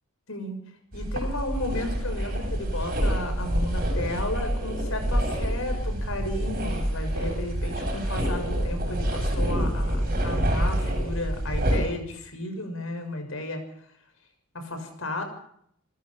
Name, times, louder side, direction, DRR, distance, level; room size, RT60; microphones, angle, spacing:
voice 1, 0.3-0.6 0.9-13.6 14.5-15.2, left 1 dB, 65° left, 6 dB, 6.3 m, -33 dB
sound 1, 0.9-11.8, equal, 40° right, 8.0 m, -27 dB
29.5 x 15.0 x 5.9 m, 0.69 s
head